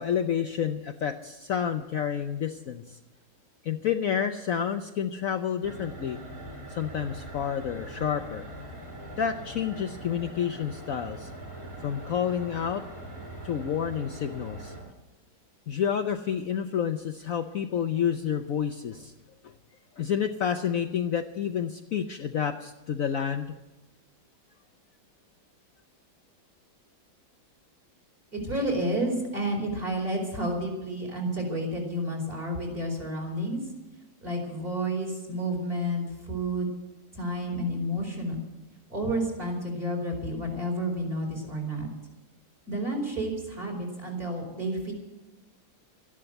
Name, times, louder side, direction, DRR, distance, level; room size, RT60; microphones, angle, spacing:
voice 1, 0.0-3.0 3.6-6.2 6.7-8.4 9.2-11.3 11.8-12.8 13.4-14.7 15.7-19.1 19.4-19.5 20.0-23.6, left 8 dB, 60° left, 6 dB, 1.0 m, -29 dB
sound 1, 5.6-14.8, right 1 dB, 50° right, 6.8 m, -42 dB
voice 2, 28.3-33.6 34.2-36.7 37.1-38.4 38.9-41.9 42.7-44.9, right 1 dB, 30° right, 0 dB, 4.5 m, -30 dB
13.5 x 11.5 x 7.9 m, 1.0 s
omnidirectional pair, 1.9 m